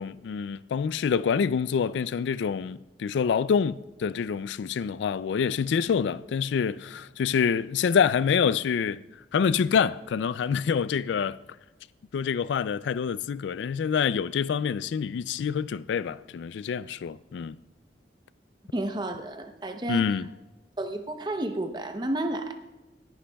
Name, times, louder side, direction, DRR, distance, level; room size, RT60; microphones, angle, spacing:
voice 1, 0.0-9.0 9.3-11.4 12.1-17.6 19.9-20.3, left 6 dB, 75° left, 0.3 m, -26 dB
voice 2, 18.7-20.1 20.8-22.6, right 1 dB, 25° right, 0.7 m, -31 dB
18.5 x 11.0 x 2.3 m
head